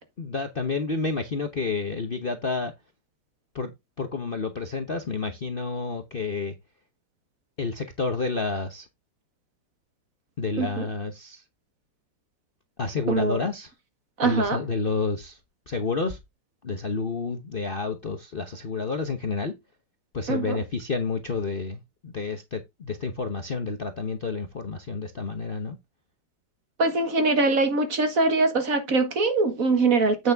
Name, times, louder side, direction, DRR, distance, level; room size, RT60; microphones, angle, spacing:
voice 1, 0.2-2.7 3.5-3.7 4.0-6.6 7.6-8.9 10.4-11.4 12.8-13.7 14.2-15.4 15.7-16.2 16.6-19.5 20.1-25.8, left 4 dB, 40° left, 0.9 m, -29 dB
voice 2, 13.1-13.5 14.2-14.6 20.3-20.6 26.8-30.3, right 3 dB, 50° right, 2.0 m, -23 dB
8.6 x 6.4 x 3.4 m
omnidirectional pair, 2.0 m